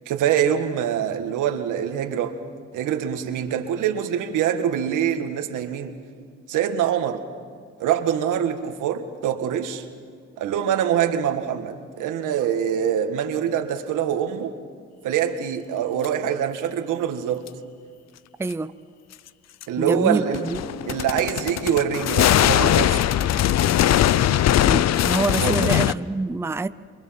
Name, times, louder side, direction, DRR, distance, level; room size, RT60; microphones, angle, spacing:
voice 1, 0.1-2.3 2.7-6.0 6.5-7.2 7.8-9.9 10.4-14.5 15.0-17.5 19.7-20.4 20.9-23.1 25.4-25.6, right 9 dB, 90° right, 1.9 m, -24 dB
sound 1, 16.0-16.1 17.5-17.6 19.6-19.7 20.3-25.9, left 11 dB, 60° left, 0.6 m, -20 dB
voice 2, 18.4-18.7 19.8-20.6 24.7-26.7, right 3 dB, 10° right, 0.6 m, -26 dB
27.5 x 23.5 x 5.9 m
cardioid pair, 90°, 30 cm